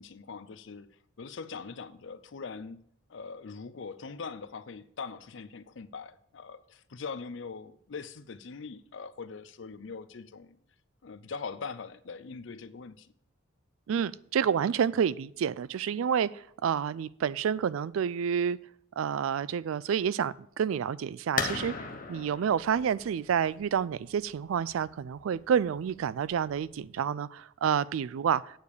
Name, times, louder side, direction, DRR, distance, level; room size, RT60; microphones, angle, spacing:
voice 1, 0.0-2.8 3.1-10.6 11.0-13.1, left 5 dB, 65° left, 0.5 m, -42 dB
voice 2, 13.9-18.6 19.0-28.6, right 8 dB, 85° right, 0.3 m, -29 dB
sound 1, 21.4-26.9, left 5 dB, 40° left, 1.0 m, -39 dB
9.1 x 4.9 x 6.8 m
head